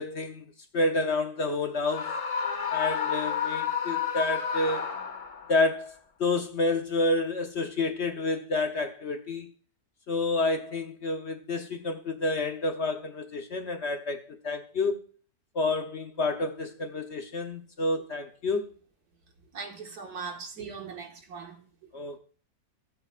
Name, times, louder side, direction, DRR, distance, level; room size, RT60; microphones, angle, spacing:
voice 1, 0.0-2.2 2.7-4.9 5.5-9.5 10.1-15.0 15.5-18.7 21.9-22.2, left 2 dB, 55° left, 0.9 m, -29 dB
Screaming, 1.9-5.5, left 7 dB, 30° left, 0.9 m, -30 dB
voice 2, 19.5-21.9, right 5 dB, 75° right, 2.1 m, -40 dB
17.5 x 8.0 x 2.4 m
omnidirectional pair, 1.7 m